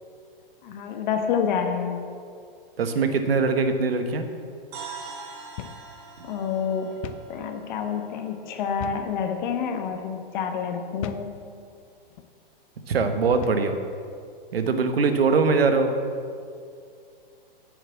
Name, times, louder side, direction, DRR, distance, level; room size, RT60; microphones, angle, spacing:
voice 1, 0.6-2.0 6.2-6.9 7.3-11.3, left 7 dB, 50° left, 5 dB, 1.4 m, -28 dB
voice 2, 2.8-4.3 12.9-13.8 14.5-15.9, right 4 dB, 85° right, 8 dB, 1.2 m, -22 dB
sound 1, 4.7-8.7, right 5 dB, 40° right, 1.9 m, -43 dB
sound 2, 5.6-5.9 6.2-6.3 7.0-7.3 8.8-9.2 9.8-10.0 11.0-11.4 12.1-12.3 13.3-13.7, left 11 dB, 35° left, 0.5 m, -37 dB
8.4 x 7.1 x 7.3 m, 2.3 s
hypercardioid pair, 135°, 29 cm